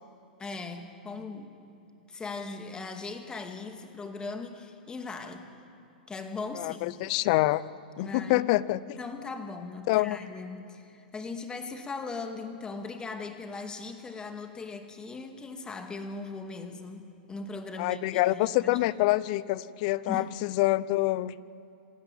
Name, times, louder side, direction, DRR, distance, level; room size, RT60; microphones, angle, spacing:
voice 1, 0.4-1.5 2.1-5.5 6.1-6.9 8.0-8.5 9.0-18.9 20.1-20.3, left 4 dB, 15° left, 6 dB, 2.2 m, -39 dB
voice 2, 6.5-7.6 8.0-8.8 9.9-10.2 17.8-21.3, left 18 dB, 55° left, 18 dB, 0.7 m, -26 dB
27.0 x 13.0 x 9.1 m, 2.8 s
hypercardioid pair, 110°, 5 cm